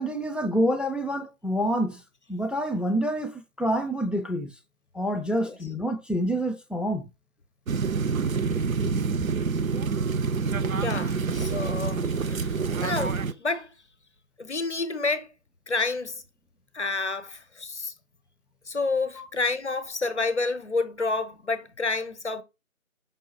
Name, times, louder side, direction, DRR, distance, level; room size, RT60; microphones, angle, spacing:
voice 1, 0.0-2.0 2.3-4.5 4.9-7.0, equal, ahead, 0.4 m, -27 dB
sound 1, 7.7-13.3, right 5 dB, 80° right, 0.5 m, -27 dB
voice 2, 10.7-13.7 14.4-15.3 15.7-16.2 16.7-17.9 18.7-22.4, left 3 dB, 55° left, 0.6 m, -29 dB
5.4 x 3.0 x 2.8 m
figure-of-eight pair, 175°, 41 cm